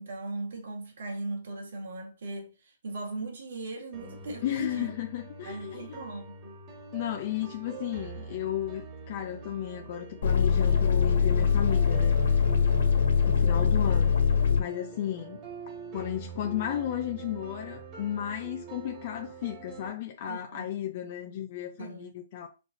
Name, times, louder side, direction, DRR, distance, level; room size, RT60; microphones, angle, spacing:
voice 1, 0.0-2.5 2.8-4.9 5.4-6.6 20.3-20.7 21.8-22.1, right 2 dB, 70° right, 2.0 m, -38 dB
sound 1, 3.9-19.9, right 4 dB, 35° right, 1.6 m, -45 dB
voice 2, 4.4-6.0 6.9-12.2 13.3-14.1 14.6-15.4 15.9-22.5, left 11 dB, 50° left, 0.6 m, -34 dB
sound 2, 10.2-14.6, left 6 dB, 70° left, 1.6 m, -23 dB
4.7 x 3.9 x 2.6 m
hypercardioid pair, 130°, 0 cm